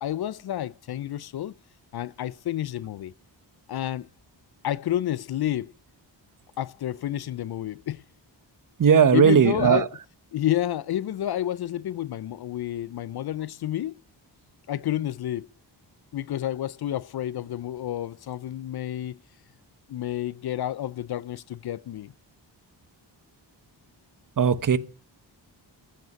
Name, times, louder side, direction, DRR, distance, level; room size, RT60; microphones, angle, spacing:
voice 1, 0.0-1.5 1.9-3.1 3.7-4.1 4.6-5.7 6.6-8.0 9.1-9.9 10.3-14.0 14.7-15.5 16.1-19.2 19.9-22.1, left 12 dB, 60° left, 0.5 m, -30 dB
voice 2, 8.8-9.9 24.4-24.8, right 7 dB, 45° right, 0.9 m, -18 dB
15.0 x 5.4 x 7.7 m
wide cardioid pair, 90°, 44 cm